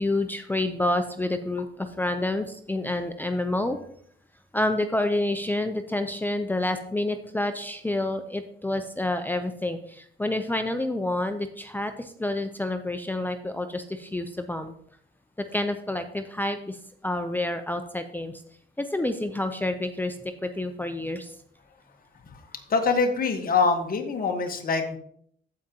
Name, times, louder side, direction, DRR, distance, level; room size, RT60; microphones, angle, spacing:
voice 1, 0.0-3.8 4.5-14.7 15.5-16.8 17.0-18.3 18.8-20.2 20.4-21.3, left 1 dB, 10° left, 7 dB, 0.6 m, -28 dB
voice 2, 22.3-25.0, left 4 dB, 45° left, 5 dB, 1.4 m, -25 dB
15.0 x 5.1 x 2.9 m, 0.65 s
cardioid pair, 90°, 20 cm